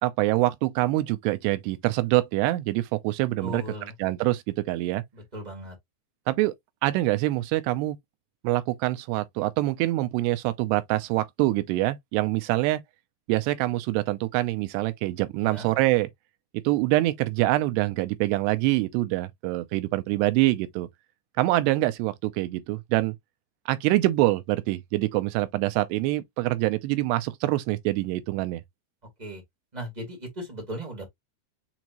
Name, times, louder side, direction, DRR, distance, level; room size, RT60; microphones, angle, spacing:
voice 1, 0.0-3.6 4.0-5.0 6.3-6.5 6.8-8.0 8.4-12.8 13.3-16.1 16.5-20.9 21.4-23.2 23.7-28.6, right 18 dB, 85° right, 2.7 m, -25 dB
voice 2, 3.4-3.9 5.1-5.7 15.4-15.7 29.2-29.4 29.7-31.1, equal, 55° right, 0.4 m, -37 dB
7.1 x 2.5 x 3.0 m
omnidirectional pair, 4.8 m